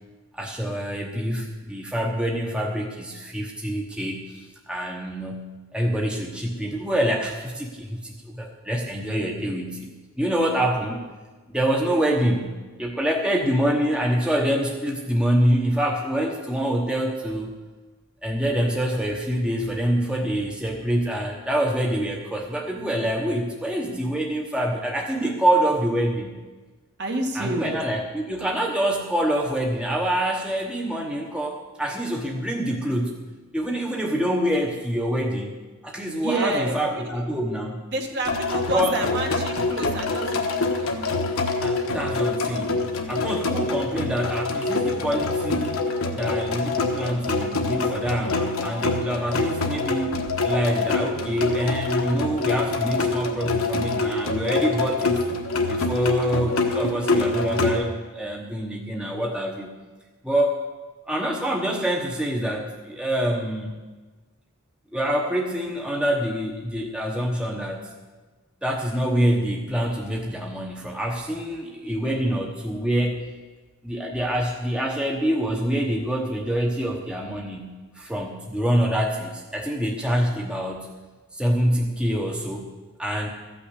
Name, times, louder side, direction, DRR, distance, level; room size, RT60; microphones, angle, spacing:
voice 1, 0.3-9.9 10.2-11.0 11.5-17.5 18.2-26.4 27.3-33.2 33.5-35.6 35.8-37.8 38.7-39.0 41.6-45.8 46.1-50.1 50.4-55.2 55.7-59.7 60.2-60.6 61.1-63.7 64.9-67.9 68.6-73.3 73.8-80.9 81.3-82.7 83.0-83.3, equal, 5° right, 0 dB, 1.0 m, -26 dB
voice 2, 27.0-27.8 36.2-37.1 37.9-40.5 40.8-40.9 49.0-49.3, right 2 dB, 50° right, 2 dB, 1.6 m, -29 dB
sound 1, 38.2-57.8, left 3 dB, 65° left, 1.3 m, -25 dB
14.0 x 6.1 x 8.2 m, 1.3 s
head